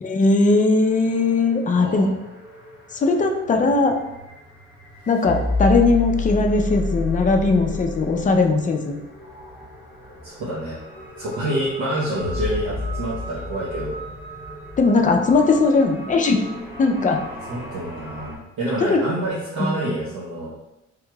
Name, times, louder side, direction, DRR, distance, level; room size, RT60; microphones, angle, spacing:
voice 1, 0.0-2.1 2.9-4.0 5.1-9.0 14.8-16.5 16.8-17.2 18.9-19.0 19.6-19.9, left 3 dB, 25° left, 3 dB, 0.4 m, -19 dB
sound 1, 0.8-18.4, left 2 dB, 35° right, 1.3 m, -32 dB
voice 2, 1.8-2.1 10.2-10.8 11.2-14.0 17.5-20.5, right 1 dB, 75° right, -8 dB, 0.9 m, -27 dB
3.6 x 2.9 x 2.3 m, 0.96 s
cardioid pair, 90°, 30 cm